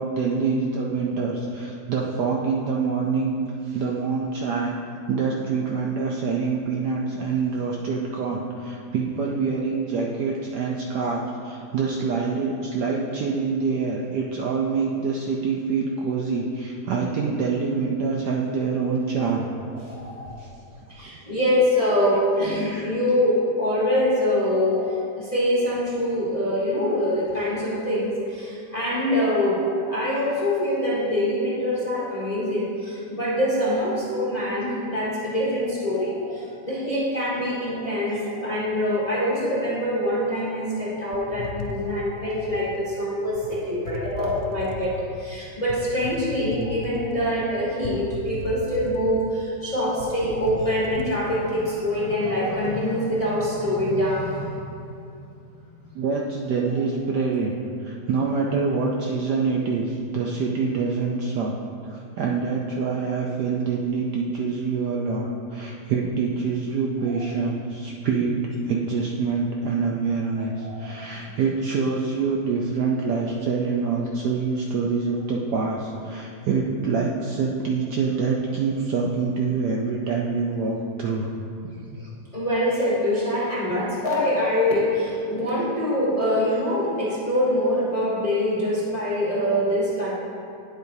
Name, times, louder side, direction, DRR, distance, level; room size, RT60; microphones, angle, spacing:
voice 1, 0.0-3.3 3.6-4.8 5.1-19.5 20.4-20.5 22.5-22.9 55.9-57.5 57.8-61.5 61.8-81.3 81.9-82.1, right 4 dB, 70° right, -1 dB, 1.0 m, -26 dB
voice 2, 19.7-20.4 20.9-54.5 67.1-67.2 70.4-70.9 82.3-90.1, left 1 dB, 25° left, -8 dB, 1.0 m, -24 dB
sound 1, 41.1-42.6 43.3-43.5 43.8-45.0 45.7-47.3 47.8-49.3 49.6-49.7 50.0-51.2, left 4 dB, 75° left, 0.9 m, -36 dB
9.4 x 7.8 x 2.7 m, 2.5 s
omnidirectional pair, 2.2 m